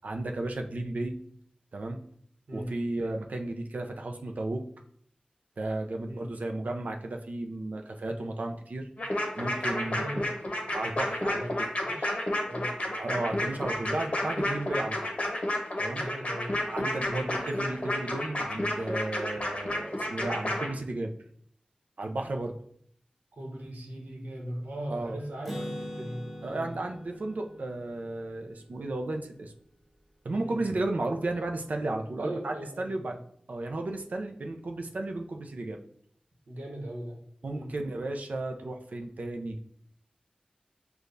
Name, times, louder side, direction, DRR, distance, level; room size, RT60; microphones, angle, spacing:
voice 1, 0.0-1.2 1.7-2.0 2.5-4.6 5.6-8.9 9.4-10.0 10.7-11.7 13.0-15.1 15.8-16.1 16.6-21.1 22.0-22.5 24.9-25.2 26.4-29.5 30.2-33.2 33.5-35.8 37.4-39.6, right 2 dB, 70° right, 3 dB, 0.5 m, -34 dB
sound 1, 9.0-20.7, left 1 dB, 50° left, 0.9 m, -31 dB
voice 2, 9.9-10.3 11.2-11.5 11.9-12.2 12.5-12.7 15.9-16.6 17.0-17.2 23.3-26.2 26.5-26.7 30.4-30.6 32.2-33.2 36.5-37.2 37.5-37.7, right 1 dB, 90° right, 0 dB, 1.0 m, -39 dB
Acoustic guitar, 25.4-29.1, equal, ahead, 0.8 m, -42 dB
6.5 x 2.3 x 2.6 m, 0.64 s
wide cardioid pair, 80°, 3 cm